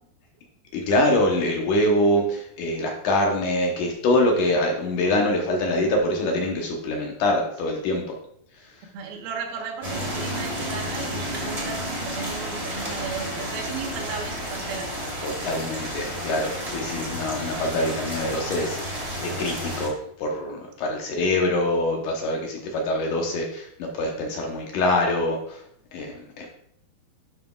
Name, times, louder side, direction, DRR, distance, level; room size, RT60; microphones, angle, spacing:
voice 1, 0.7-8.0 15.2-19.9 20.2-25.6 25.9-26.5, left 1 dB, 70° left, 1 dB, 2.2 m, -24 dB
voice 2, 8.9-14.9, right 6 dB, 85° right, 3 dB, 2.9 m, -35 dB
sound 1, 9.8-19.9, equal, 30° right, 0.7 m, -31 dB
11.0 x 5.8 x 2.3 m, 0.70 s
omnidirectional pair, 4.3 m